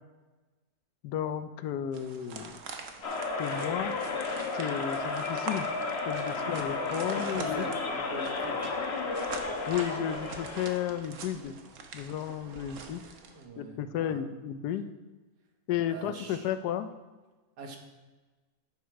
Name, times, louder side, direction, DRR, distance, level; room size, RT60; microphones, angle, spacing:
voice 1, 1.0-2.6 3.4-4.0 4.5-5.7 6.1-7.7 9.7-11.5 11.9-13.0 13.6-14.9 15.7-16.9, left 9 dB, 80° left, 11 dB, 1.1 m, -33 dB
sound 1, 1.9-13.4, right 5 dB, 55° right, 1.1 m, -44 dB
sound 2, 3.0-11.0, left 4 dB, 45° left, 1.1 m, -33 dB
sound 3, 3.8-6.0, left 1 dB, 15° left, 1.0 m, -48 dB
voice 2, 6.3-8.6 13.3-14.2 15.9-16.5 17.6-17.8, right 3 dB, 75° right, 3 dB, 1.7 m, -44 dB
8.8 x 6.4 x 4.6 m, 1.2 s
omnidirectional pair, 1.8 m